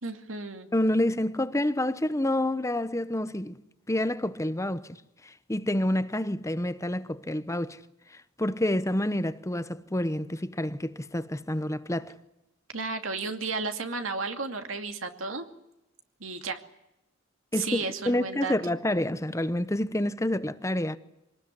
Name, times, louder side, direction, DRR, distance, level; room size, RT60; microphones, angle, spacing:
voice 1, 0.0-0.7 12.7-15.5 16.2-16.6 17.5-18.5, right 4 dB, 75° right, 2.5 m, -33 dB
voice 2, 0.7-3.6 3.9-5.0 5.2-7.8 8.1-12.1 17.5-21.0, left 1 dB, 15° left, 0.9 m, -28 dB
25.0 x 19.0 x 9.8 m
head